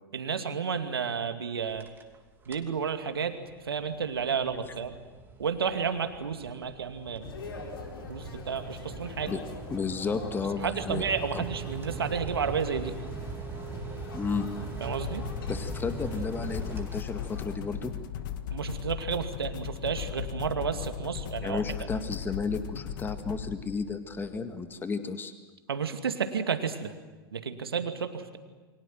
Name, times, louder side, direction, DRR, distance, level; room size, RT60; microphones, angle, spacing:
voice 1, 0.1-1.9 2.5-3.4 3.6-5.0 5.4-7.3 8.1-9.3 10.6-12.9 14.8-15.2 18.5-21.6 25.7-26.9 27.3-28.4, right 6 dB, 75° right, 7 dB, 2.4 m, -31 dB
sound 1, 1.6-2.2 2.4-2.8 3.2-17.5, right 5 dB, 15° right, 2.9 m, -41 dB
sound 2, 7.2-17.6, left 4 dB, 70° left, 4.5 m, -44 dB
voice 2, 9.7-11.1 11.3-11.4 14.1-14.5 15.5-17.9 21.4-25.3, left 4 dB, 15° left, 8 dB, 1.9 m, -33 dB
sound 3, 14.9-24.5, left 10 dB, 55° left, 1.7 m, -37 dB
29.0 x 23.5 x 7.7 m, 1.3 s
figure-of-eight pair, 100°, 13 cm